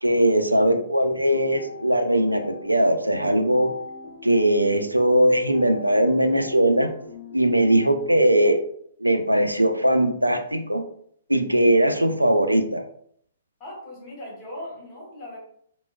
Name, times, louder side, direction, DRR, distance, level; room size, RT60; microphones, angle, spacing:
voice 1, 0.0-3.7 4.2-6.9 7.3-8.6 9.0-10.8 11.3-12.8, right 1 dB, 90° right, 7 dB, 0.4 m, -20 dB
sound 1, 1.3-8.2, left 3 dB, 55° left, 0.7 m, -41 dB
voice 2, 13.6-15.4, left 1 dB, 25° left, -6 dB, 1.5 m, -38 dB
3.5 x 2.1 x 2.2 m, 0.65 s
figure-of-eight pair, 120°, 0 cm